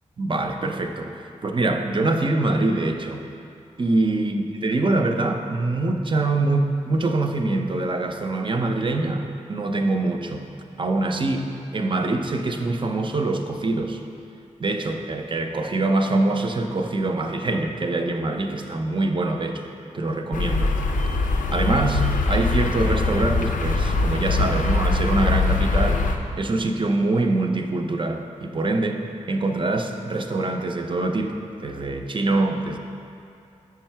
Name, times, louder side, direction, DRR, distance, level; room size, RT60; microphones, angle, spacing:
voice 1, 0.2-3.2 3.8-10.4 10.8-14.0 14.6-19.7 19.9-20.8 21.5-26.0 26.4-29.0 29.3-32.8, right 2 dB, 35° right, 4 dB, 0.5 m, -24 dB
sound 1, 20.3-26.2, left 3 dB, 75° left, 0.4 m, -22 dB
5.3 x 4.6 x 4.5 m, 2.6 s
cardioid pair, 40°, 14 cm